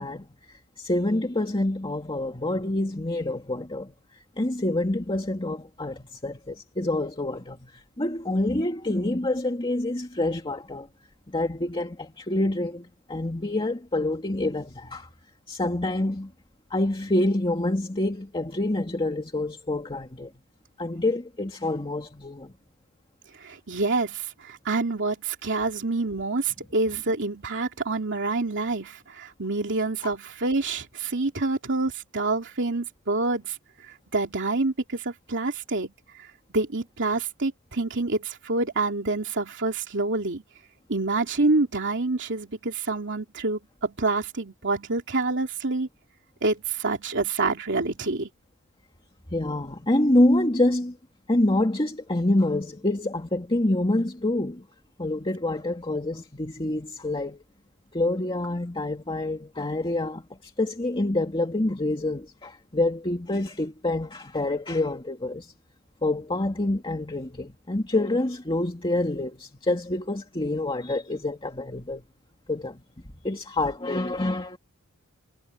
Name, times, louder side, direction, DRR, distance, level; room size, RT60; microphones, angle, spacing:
voice 1, 0.0-10.9 11.3-15.1 15.5-16.3 16.7-20.3 20.8-22.5 30.0-30.1 49.3-51.0 51.3-54.7 55.0-57.4 57.9-65.5 66.0-72.0 72.5-72.8 73.2-74.6, left 1 dB, 25° left, 2.1 m, -27 dB
voice 2, 23.4-33.6 34.1-35.9 36.5-40.4 40.9-45.9 46.4-48.3, right 3 dB, 55° right, 2.8 m, -27 dB
head